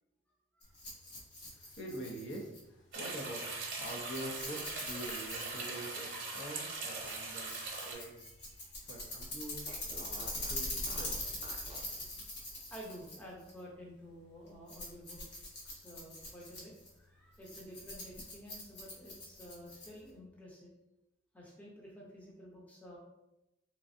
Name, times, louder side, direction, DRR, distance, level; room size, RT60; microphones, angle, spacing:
Rattle, 0.6-20.2, left 1 dB, 55° left, 1.1 m, -44 dB
voice 1, 1.3-8.1 8.8-11.4 11.9-12.0, right 1 dB, 80° left, -1 dB, 0.8 m, -46 dB
sound 1, 2.9-7.9, right 3 dB, 45° right, 0.8 m, -41 dB
Fart, 7.6-8.7 9.0-9.1 9.6-12.0, right 2 dB, 30° right, 0.4 m, -54 dB
voice 2, 12.7-15.2 15.6-20.7 21.3-23.0, equal, 10° left, -4 dB, 0.7 m, -51 dB
3.6 x 3.1 x 2.6 m, 0.92 s
head